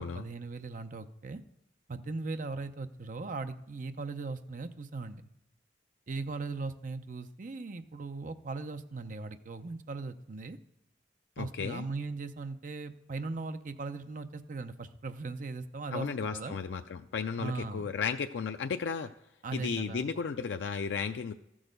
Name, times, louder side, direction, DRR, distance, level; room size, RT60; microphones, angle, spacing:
voice 1, 0.0-1.4 1.9-5.3 6.1-10.6 11.4-16.6 17.4-17.9 19.4-20.1, right 3 dB, 45° right, 9 dB, 0.6 m, -39 dB
voice 2, 11.4-11.8 15.9-19.1 19.5-21.3, left 5 dB, 75° left, 7 dB, 0.4 m, -34 dB
13.0 x 6.3 x 5.1 m, 0.89 s
head